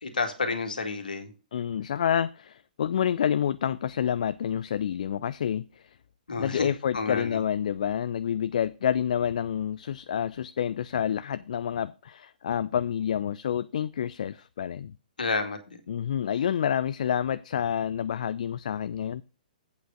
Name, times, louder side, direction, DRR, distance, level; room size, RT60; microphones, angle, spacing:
voice 1, 0.0-1.3 6.3-6.7 6.9-7.4 15.2-15.6, left 4 dB, 70° left, 2.0 m, -30 dB
voice 2, 1.5-6.0 6.4-14.9 15.9-19.2, left 9 dB, 55° left, 0.3 m, -28 dB
8.4 x 5.0 x 6.4 m
figure-of-eight pair, 120°, 5 cm